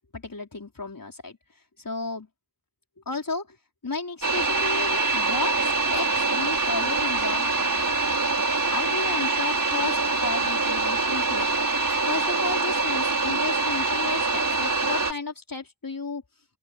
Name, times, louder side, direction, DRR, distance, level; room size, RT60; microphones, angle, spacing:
voice 1, 0.1-1.4 1.8-2.3 3.0-3.6 3.8-7.9 8.4-11.5 11.9-16.2, left 3 dB, 55° left, 4.5 m, -33 dB
sound 1, 4.2-15.1, right 3 dB, 55° right, 5.5 m, -24 dB
open air
cardioid pair, 40°, 39 cm